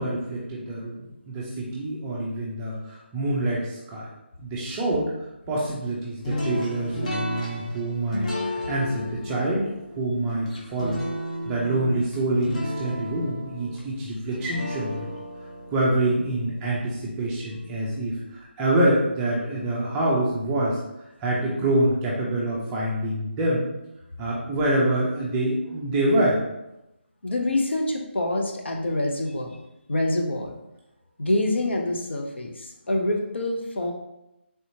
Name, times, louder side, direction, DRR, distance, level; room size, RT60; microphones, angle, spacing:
voice 1, 0.0-4.1 4.4-5.1 5.5-11.0 11.5-15.1 15.7-18.2 18.6-20.8 21.2-23.7 24.2-26.4, right 1 dB, 10° right, -5 dB, 0.4 m, -26 dB
sound 1, 6.2-17.3, left 1 dB, 40° left, 0.9 m, -34 dB
voice 2, 27.2-29.6 29.9-30.6 31.2-33.9, left 1 dB, 70° left, 1 dB, 0.7 m, -26 dB
3.5 x 2.8 x 2.7 m, 0.90 s
figure-of-eight pair, 160°, 6 cm